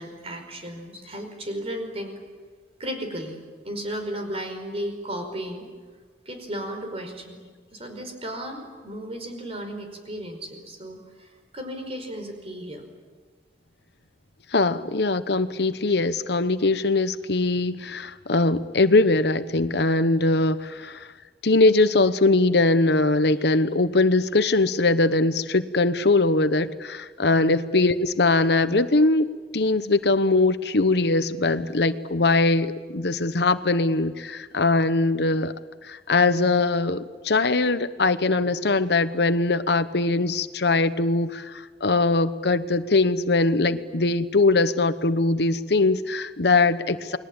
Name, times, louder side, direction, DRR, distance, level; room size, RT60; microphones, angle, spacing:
voice 1, 0.0-2.1 2.8-3.4 3.6-5.7 6.3-7.4 7.7-11.3 11.5-12.8 27.3-27.6, equal, 35° right, 5 dB, 5.1 m, -34 dB
voice 2, 14.5-21.1 21.4-29.3 29.5-35.5 35.8-47.2, left 3 dB, 65° left, 12 dB, 1.0 m, -21 dB
29.5 x 21.5 x 8.8 m, 1.5 s
head